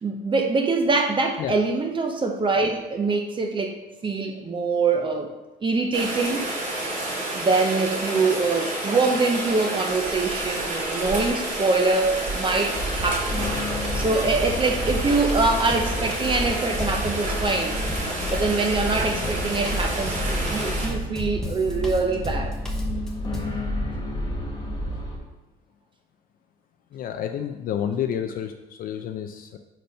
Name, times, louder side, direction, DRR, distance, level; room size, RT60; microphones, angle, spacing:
voice 1, 0.0-3.7 4.0-5.3 5.6-6.5 7.3-13.4 13.9-17.8 18.3-22.5, right 3 dB, 30° right, 3 dB, 0.7 m, -24 dB
Rain, 5.9-20.9, right 1 dB, 50° right, 2.4 m, -30 dB
sound 1, 12.7-25.2, equal, 20° left, 1.6 m, -30 dB
Drum kit, 14.9-23.6, left 1 dB, 5° left, 1.0 m, -38 dB
voice 2, 26.9-29.6, left 9 dB, 60° left, 6 dB, 0.5 m, -30 dB
5.2 x 4.3 x 5.3 m, 1.0 s
cardioid pair, 110°, 17 cm